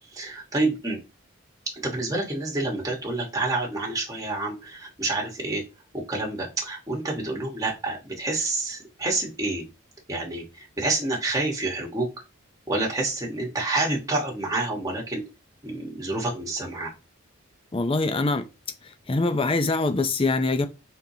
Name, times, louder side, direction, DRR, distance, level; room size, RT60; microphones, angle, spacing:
voice 1, 0.1-1.0 1.8-5.6 5.9-9.6 10.1-12.1 12.7-15.2 15.6-16.9, right 2 dB, 15° right, 1.2 m, -28 dB
voice 2, 17.7-18.5 18.8-20.7, left 3 dB, 25° left, 0.5 m, -24 dB
4.5 x 3.8 x 2.7 m
head